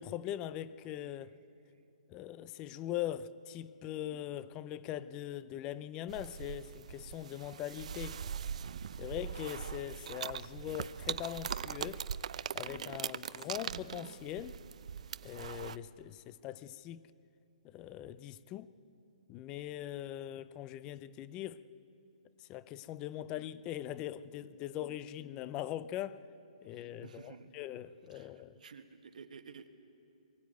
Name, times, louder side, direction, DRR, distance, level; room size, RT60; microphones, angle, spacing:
voice 1, 0.0-1.3 2.1-8.2 9.0-12.0 12.5-14.6 15.2-17.1 17.6-18.7 19.3-21.6 22.4-26.2 26.6-28.6, left 12 dB, 15° left, 0.4 m, -41 dB
sound 1, 6.1-15.8, right 8 dB, 55° right, 0.5 m, -41 dB
voice 2, 26.7-27.5 28.1-29.7, right 5 dB, 75° right, 1.6 m, -53 dB
23.0 x 15.5 x 9.3 m
hypercardioid pair, 165°, 4 cm